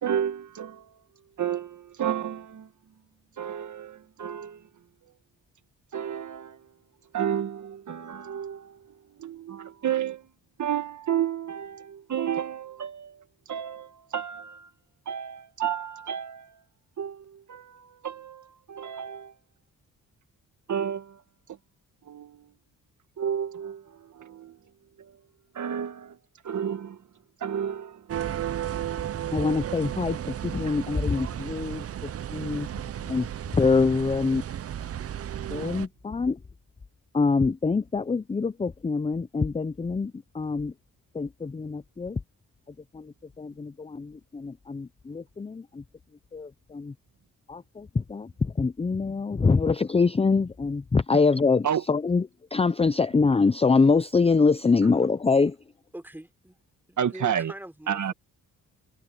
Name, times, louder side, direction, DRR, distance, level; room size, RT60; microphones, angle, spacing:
voice 1, 0.0-0.9 1.4-2.7 3.4-4.6 5.9-6.6 7.1-8.8 9.2-10.2 10.6-14.7 15.0-16.6 17.0-19.3 20.7-21.2 22.1-22.5 23.2-24.6 25.0-25.1 25.5-26.2 26.4-27.0 27.4-28.1 30.7-30.8 51.6-51.8 57.0-57.5 57.9-58.1, right 9 dB, 60° right, 1.5 m, -31 dB
sound 1, 28.1-35.9, right 10 dB, 45° right, 0.6 m, -34 dB
voice 2, 29.3-30.2 30.4-32.7 33.1-33.3 33.6-34.4 35.5-36.4 37.1-40.7 41.1-42.2 42.9-45.8 46.3-46.9 47.5-52.2 52.5-55.6, left 4 dB, 20° left, 0.6 m, -25 dB
voice 3, 55.9-56.6 56.9-58.1, right 1 dB, 5° right, 4.1 m, -42 dB
cardioid pair, 85°, 33 cm